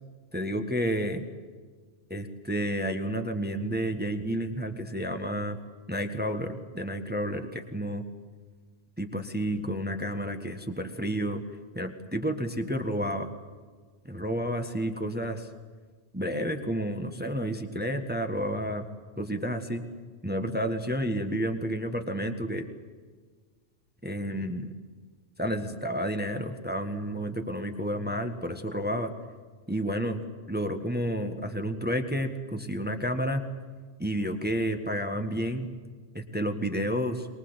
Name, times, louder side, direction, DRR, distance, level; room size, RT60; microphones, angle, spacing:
voice 1, 0.3-1.2 2.1-5.6 5.9-8.0 9.0-11.4 11.7-13.3 14.0-15.5 16.1-18.9 19.2-19.8 20.2-22.6 24.0-24.7 25.4-29.1 29.7-33.4 34.0-35.7 36.1-37.3, equal, 10° right, 6 dB, 1.4 m, -30 dB
23.5 x 21.5 x 8.1 m, 1.5 s
omnidirectional pair, 1.3 m